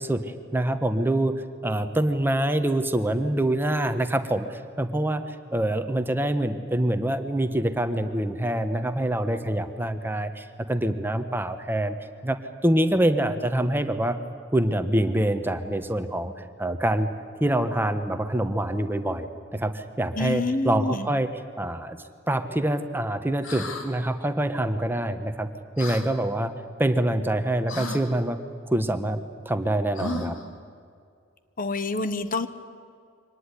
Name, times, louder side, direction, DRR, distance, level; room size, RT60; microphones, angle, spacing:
voice 1, 0.0-12.0 12.2-14.2 14.5-16.3 16.6-17.1 17.4-21.3 21.6-22.0 22.3-25.5 25.8-26.5 26.8-28.4 28.7-29.2 29.4-30.4, right 1 dB, 10° right, 8 dB, 1.2 m, -25 dB
voice 2, 20.2-21.1 31.6-32.5, left 3 dB, 45° left, 12 dB, 1.0 m, -27 dB
sound 1, 23.4-23.9 25.8-26.0 27.7-28.0 29.9-30.5, left 2 dB, 75° left, 2.7 m, -33 dB
24.5 x 19.0 x 10.0 m, 2.3 s
head